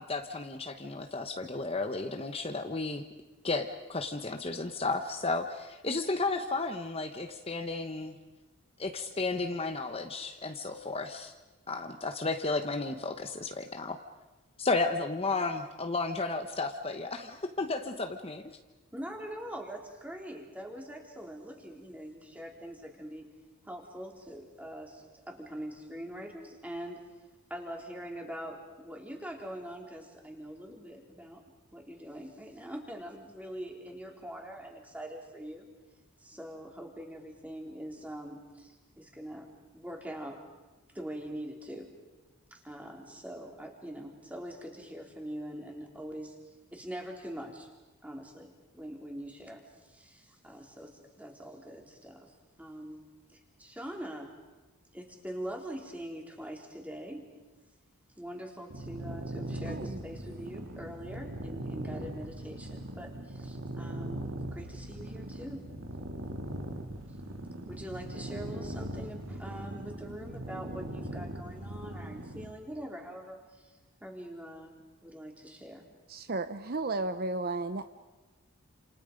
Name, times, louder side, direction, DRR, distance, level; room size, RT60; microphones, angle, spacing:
voice 1, 0.0-3.0 3.4-8.2 8.8-11.3 11.7-14.0 14.6-18.5, left 3 dB, 25° left, 6 dB, 1.1 m, -33 dB
voice 2, 18.9-23.3 23.6-27.0 27.5-31.4 31.7-35.7 36.2-40.4 40.9-41.9 42.5-46.3 46.7-47.7 48.0-53.0 53.3-54.3 54.9-57.4 58.2-65.7 67.7-75.9, equal, 5° right, 1 dB, 3.5 m, -43 dB
sound 1, 58.7-72.5, right 1 dB, 65° right, 2.8 m, -40 dB
voice 3, 59.7-60.0 76.1-77.9, right 2 dB, 45° right, 10 dB, 0.8 m, -33 dB
30.0 x 28.0 x 5.2 m, 1.2 s
head